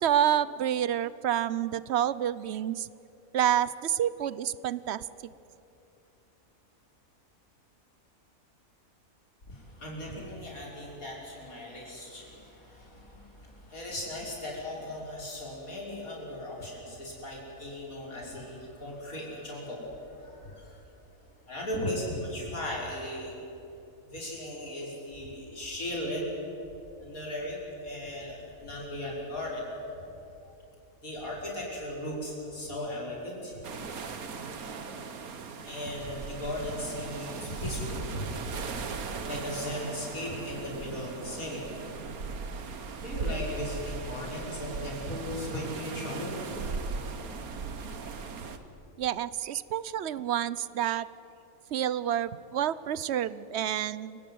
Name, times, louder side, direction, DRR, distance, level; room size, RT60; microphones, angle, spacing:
voice 1, 0.0-2.9 3.3-5.1 49.0-51.1 51.7-54.2, right 10 dB, 60° right, 17 dB, 0.8 m, -28 dB
voice 2, 9.5-20.9 21.5-23.3 24.0-26.3 27.0-29.7 30.4-30.5 31.0-33.6 35.6-41.6 43.0-46.6, left 1 dB, 75° left, -3 dB, 6.2 m, -37 dB
sound 1, 33.6-48.6, right 4 dB, 90° right, 1.8 m, -38 dB
28.5 x 17.5 x 9.4 m, 2.9 s
omnidirectional pair, 1.5 m